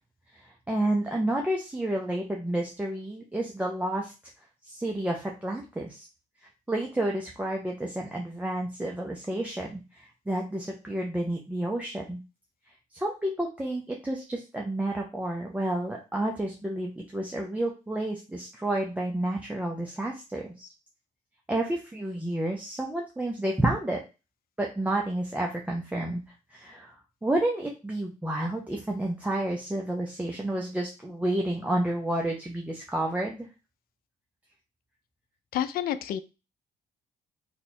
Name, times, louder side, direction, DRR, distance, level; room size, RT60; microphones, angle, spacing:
voice 1, 0.3-4.1 4.6-6.1 6.7-12.2 12.9-20.7 21.5-24.0 24.6-26.2 26.5-27.0 27.2-33.5, right 1 dB, 10° right, -1 dB, 0.5 m, -30 dB
voice 2, 35.5-36.2, left 10 dB, 70° left, 12 dB, 0.4 m, -29 dB
2.8 x 2.3 x 4.1 m, 0.29 s
cardioid pair, 110°, 16 cm